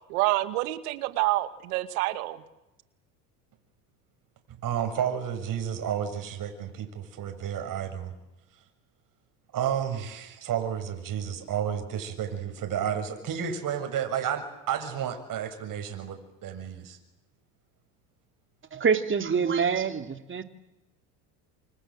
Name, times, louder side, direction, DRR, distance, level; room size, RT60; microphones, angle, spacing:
voice 1, 0.1-2.4, right 18 dB, 80° right, 10 dB, 2.5 m, -27 dB
voice 2, 4.6-8.1 9.5-17.0, right 9 dB, 50° right, 5 dB, 6.9 m, -31 dB
voice 3, 18.7-20.4, right 6 dB, 30° right, 7 dB, 3.0 m, -26 dB
28.5 x 26.5 x 7.7 m, 0.96 s
supercardioid pair, 100°, 43 cm